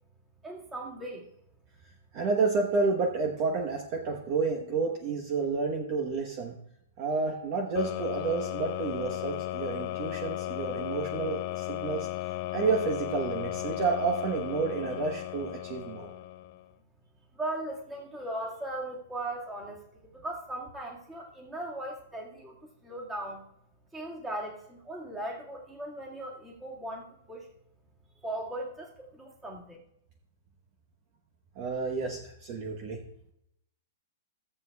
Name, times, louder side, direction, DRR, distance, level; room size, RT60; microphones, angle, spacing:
voice 1, 0.4-1.3 17.3-19.8 20.2-22.6 22.8-23.4 23.9-27.5 28.2-29.8, right 1 dB, 10° right, -3 dB, 1.9 m, -38 dB
voice 2, 2.1-6.5 7.0-12.1 12.5-16.1 31.6-33.0, right 4 dB, 30° right, 1 dB, 1.0 m, -30 dB
sound 1, 7.7-16.7, left 16 dB, 30° left, 0.3 m, -35 dB
16.5 x 7.7 x 2.3 m, 0.77 s
hypercardioid pair, 180°, 0 cm